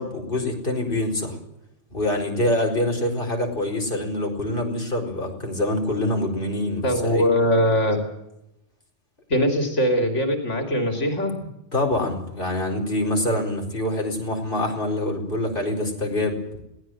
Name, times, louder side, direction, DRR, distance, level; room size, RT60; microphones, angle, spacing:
voice 1, 0.0-1.4 1.9-7.3 11.7-16.4, left 1 dB, 50° left, 2 dB, 4.8 m, -25 dB
voice 2, 6.8-8.0 9.3-11.5, equal, 90° left, 4 dB, 3.3 m, -21 dB
21.5 x 17.5 x 7.7 m, 0.86 s
omnidirectional pair, 1.2 m